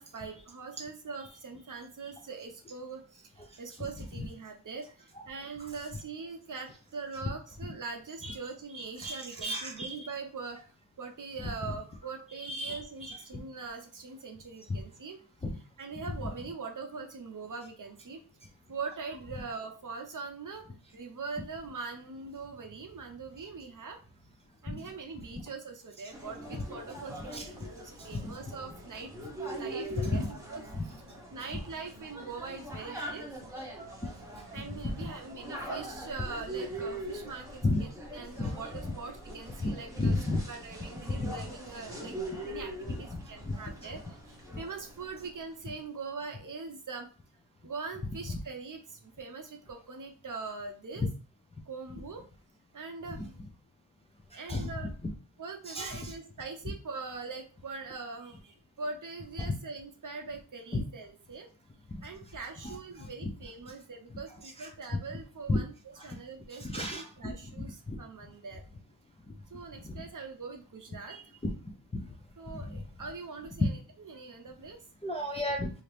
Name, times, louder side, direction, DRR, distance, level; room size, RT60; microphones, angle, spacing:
voice 1, 0.0-10.6 11.0-15.2 15.8-18.2 18.7-20.7 20.9-24.0 24.6-29.1 29.5-31.0 31.3-33.3 34.5-40.2 40.5-42.2 42.4-47.1 47.6-51.1 51.7-52.2 52.7-53.4 54.3-54.9 55.4-61.5 62.0-68.6 69.5-71.2 72.4-74.8, right 4 dB, 45° right, 3 dB, 0.6 m, -42 dB
voice 2, 8.7-10.1 12.4-13.2 24.7-24.8 27.3-27.5 28.2-28.4 30.0-30.3 30.8-30.9 34.6-35.1 37.6-37.8 38.4-38.5 39.6-40.4 41.2-41.3 42.9-43.6 43.8-43.9 44.5-44.6 51.0-51.1 53.1-53.3 54.5-54.7 55.7-56.1 59.4-59.5 60.7-60.8 62.6-63.1 64.6-64.7 65.5-65.6 66.0-66.2 66.6-68.0 69.8-69.9 71.1-71.5 72.5-72.8 73.6-73.7 75.0-75.7, left 2 dB, 15° left, 1 dB, 0.3 m, -33 dB
sound 1, 26.1-45.4, right 1 dB, 5° right, 0.8 m, -42 dB
2.8 x 2.5 x 3.3 m, 0.37 s
wide cardioid pair, 140°, 46 cm